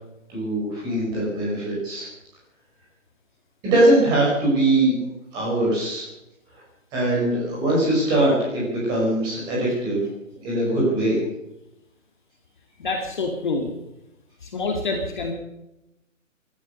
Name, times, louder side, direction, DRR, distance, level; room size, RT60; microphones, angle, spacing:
voice 1, 0.3-2.1 3.6-4.9 5.3-6.1 6.9-10.0 10.4-11.2, right 1 dB, 10° right, -4 dB, 5.2 m, -21 dB
voice 2, 12.8-13.7 14.4-15.3, left 3 dB, 35° left, 2 dB, 2.3 m, -27 dB
17.5 x 12.5 x 6.6 m, 0.88 s
hypercardioid pair, 175°, 40 cm